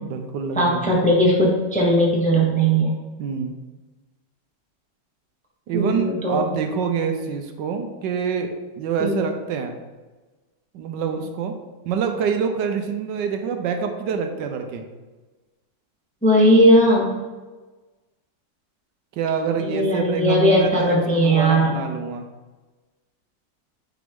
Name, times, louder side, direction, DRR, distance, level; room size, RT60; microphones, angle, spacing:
voice 1, 0.0-1.0 3.2-3.5 5.7-9.7 10.7-11.6 11.8-14.8 19.1-22.3, right 6 dB, 80° right, 6 dB, 1.3 m, -26 dB
voice 2, 0.6-2.9 5.7-6.4 9.0-9.1 16.2-17.1 19.6-21.7, equal, 5° left, -3 dB, 0.8 m, -18 dB
6.0 x 4.8 x 3.6 m, 1.2 s
omnidirectional pair, 1.9 m